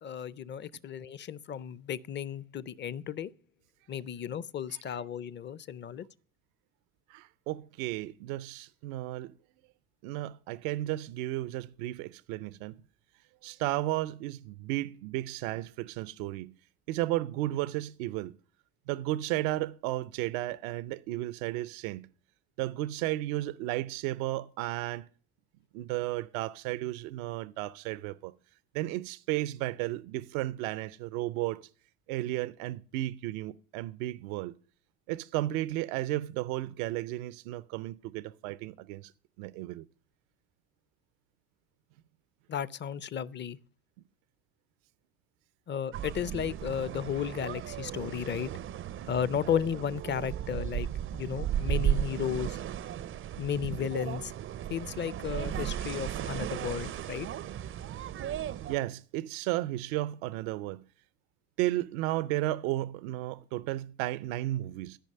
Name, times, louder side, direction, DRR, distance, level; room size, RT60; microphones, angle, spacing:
voice 1, 0.0-3.3 3.9-6.1 42.5-43.6 45.7-48.5 49.1-50.9 51.1-52.6 53.4-54.3 54.7-57.3, left 8 dB, 30° left, 0.5 m, -34 dB
voice 2, 7.1-9.3 10.0-12.7 13.4-16.5 16.9-18.3 18.9-22.1 22.6-25.1 25.7-28.3 28.7-31.7 32.1-34.5 35.1-39.1 39.4-39.8 58.7-60.8 61.6-65.0, right 16 dB, 90° right, 0.6 m, -33 dB
sound 1, 45.9-58.8, right 11 dB, 35° right, 0.4 m, -35 dB
12.5 x 5.3 x 6.5 m
supercardioid pair, 95°, 41 cm